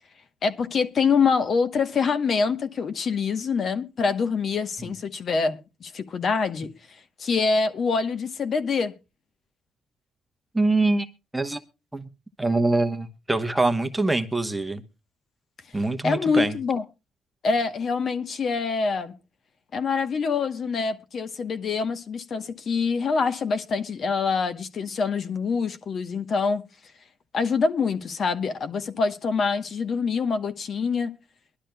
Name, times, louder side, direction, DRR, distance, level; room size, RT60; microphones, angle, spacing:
voice 1, 0.4-6.7 7.2-8.9 16.0-16.8 17.4-19.1 19.7-26.7 27.3-31.2, left 5 dB, 55° left, 1.0 m, -25 dB
voice 2, 10.5-11.1 11.3-11.6 11.9-12.1 12.4-14.8 15.7-16.6, right 2 dB, 10° right, 1.0 m, -24 dB
22.5 x 12.0 x 2.2 m
cardioid pair, 90°, 0 cm